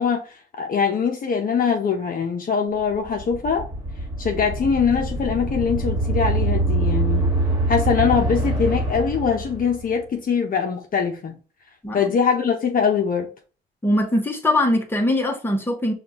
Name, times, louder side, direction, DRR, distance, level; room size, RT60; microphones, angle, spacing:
voice 1, 0.0-3.7 4.2-7.3 7.7-11.4 11.9-13.3, left 6 dB, 45° left, 0.8 m, -22 dB
sound 1, 2.9-9.9, right 1 dB, 20° right, 1.7 m, -24 dB
voice 2, 13.8-15.9, left 1 dB, 10° left, 1.0 m, -21 dB
4.9 x 2.4 x 2.9 m
cardioid pair, 90°, 20 cm